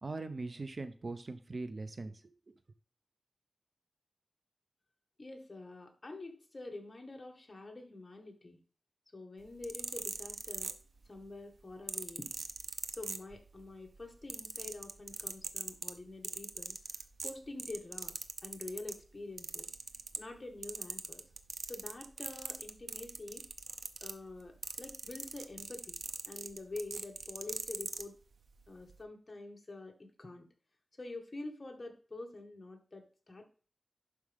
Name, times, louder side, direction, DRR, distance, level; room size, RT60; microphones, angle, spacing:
voice 1, 0.0-2.1 2.5-2.6, right 3 dB, 50° right, 10 dB, 0.8 m, -41 dB
voice 2, 5.2-8.6 9.1-10.7 11.1-12.3 12.9-16.8 17.2-18.2 18.4-19.7 20.2-21.2 21.7-23.4 24.0-26.0 26.3-28.2 28.7-30.5 31.0-33.4, left 2 dB, 35° left, 3 dB, 1.9 m, -46 dB
sound 1, 9.5-11.2 11.9-13.6 14.0-19.0 19.4-20.4 20.6-28.1 28.8-29.0, right 4 dB, 90° right, 0.7 m, -41 dB
11.5 x 4.9 x 3.6 m, 0.40 s
wide cardioid pair, 100°, 0 cm